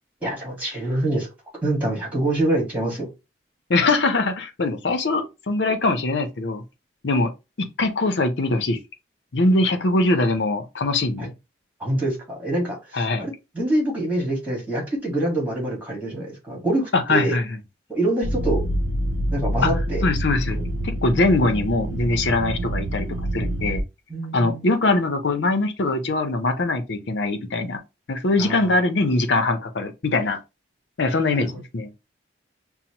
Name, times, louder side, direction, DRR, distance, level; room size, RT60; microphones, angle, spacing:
voice 1, 0.2-1.3 1.6-3.1 11.2-11.3 11.8-17.4 17.9-18.7 19.3-20.0 20.5-20.6 24.1-24.6 28.4-28.7 31.3-31.5, right 1 dB, 10° right, 1.6 m, -25 dB
voice 2, 3.7-6.6 7.0-7.3 7.6-8.8 9.3-11.3 12.9-13.3 16.9-17.6 19.6-19.7 20.0-23.1 23.3-23.8 24.3-27.8 28.1-30.4 31.0-31.9, left 2 dB, 65° left, 0.6 m, -22 dB
sound 1, 18.2-23.8, right 1 dB, 75° right, 0.6 m, -26 dB
5.5 x 2.0 x 2.8 m
head